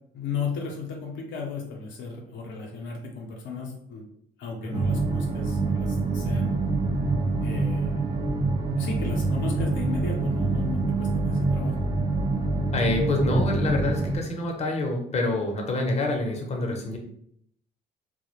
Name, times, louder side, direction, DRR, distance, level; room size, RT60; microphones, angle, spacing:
voice 1, 0.1-4.0 4.4-6.6 7.4-7.9 8.8-11.8, left 5 dB, 70° left, 0 dB, 0.6 m, -35 dB
sound 1, 4.7-14.2, right 3 dB, 20° right, 0.4 m, -26 dB
voice 2, 12.7-17.0, left 2 dB, 35° left, 2 dB, 0.6 m, -26 dB
2.1 x 2.0 x 2.9 m, 0.69 s
supercardioid pair, 70°, 20 cm